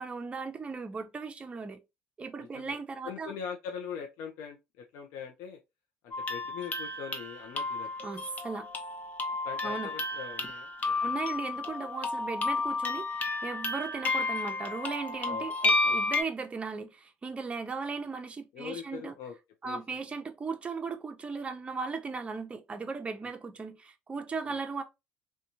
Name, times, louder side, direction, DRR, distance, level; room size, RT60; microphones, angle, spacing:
voice 1, 0.0-1.8 2.2-3.3 8.0-8.7 9.6-9.9 11.0-19.1 19.6-24.8, right 4 dB, 25° right, 0.6 m, -37 dB
voice 2, 2.4-2.8 3.0-5.6 6.0-7.9 9.4-11.1 15.2-15.8 18.5-19.3 19.6-20.0 24.5-24.6, left 7 dB, 80° left, 0.5 m, -42 dB
sound 1, 6.1-16.2, left 3 dB, 35° left, 0.7 m, -32 dB
2.9 x 2.2 x 2.5 m
supercardioid pair, 95°, 5 cm